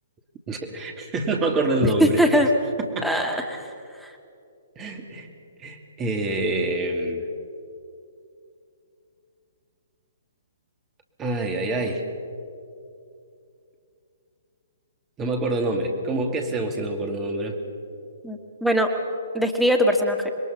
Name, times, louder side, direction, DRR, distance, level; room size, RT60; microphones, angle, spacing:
voice 1, 0.5-2.4 3.0-3.2 4.8-5.3 5.6-7.3 11.2-12.0 15.2-17.6, right 2 dB, 20° right, 3 dB, 2.5 m, -26 dB
voice 2, 2.0-2.5 3.0-3.7 4.0-4.1 18.2-18.9 19.3-20.3, equal, ahead, 2 dB, 1.9 m, -21 dB
26.5 x 21.5 x 5.9 m, 2.5 s
figure-of-eight pair, 125°, 0 cm